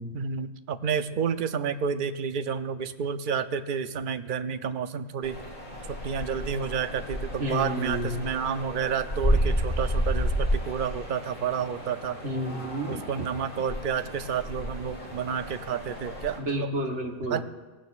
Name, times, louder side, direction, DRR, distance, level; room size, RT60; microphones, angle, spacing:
voice 1, 0.1-5.4 5.9-12.2 12.9-16.7 17.3-17.4, right 7 dB, 55° right, 10 dB, 0.7 m, -30 dB
sound 1, 5.2-16.4, equal, 40° left, 2.9 m, -31 dB
voice 2, 7.4-8.2 12.2-13.0 16.4-17.4, equal, 70° right, 2 dB, 1.7 m, -30 dB
17.5 x 16.0 x 2.4 m, 1.3 s
omnidirectional pair, 1.2 m